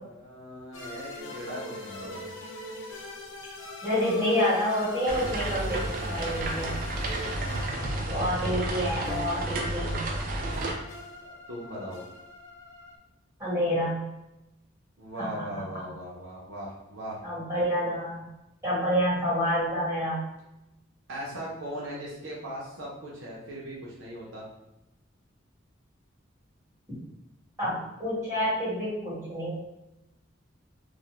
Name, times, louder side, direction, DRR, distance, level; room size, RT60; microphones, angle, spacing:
voice 1, 0.0-2.3 11.2-12.0 15.0-17.2 21.1-24.5, equal, 75° right, -5 dB, 0.7 m, -39 dB
sound 1, 0.7-13.0, left 1 dB, 70° left, 0.4 m, -42 dB
voice 2, 3.8-6.8 8.1-10.0 13.4-14.0 15.2-15.5 17.2-18.3 18.6-20.2 27.6-29.5, equal, 15° right, -10 dB, 1.3 m, -28 dB
sound 2, 5.1-10.7, right 1 dB, 45° right, 0.3 m, -31 dB
2.5 x 2.1 x 3.0 m, 0.92 s
head